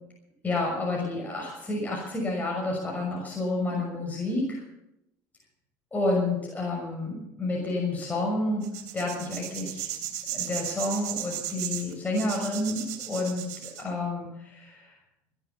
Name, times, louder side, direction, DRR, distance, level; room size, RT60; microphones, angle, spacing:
voice 1, 0.4-4.6 5.9-8.6 8.9-9.9 10.3-13.5 13.8-15.0, left 2 dB, 20° left, -2 dB, 6.2 m, -29 dB
Dedos sobrel lienzo, 8.6-13.8, right 11 dB, 85° right, 3.4 m, -35 dB
17.5 x 11.5 x 7.1 m, 0.86 s
supercardioid pair, 90°, 9 cm